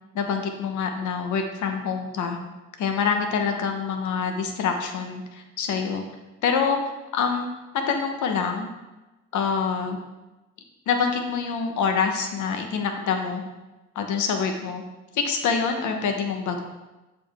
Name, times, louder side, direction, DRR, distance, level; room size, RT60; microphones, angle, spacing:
voice 1, 0.1-2.4 2.8-6.0 6.4-6.8 7.1-7.5 7.7-8.7 9.3-10.0 10.9-13.4 13.9-14.8 15.1-16.6, left 6 dB, 75° left, 5 dB, 1.0 m, -26 dB
6.9 x 5.3 x 3.5 m, 1.1 s
cardioid pair, 90°, 30 cm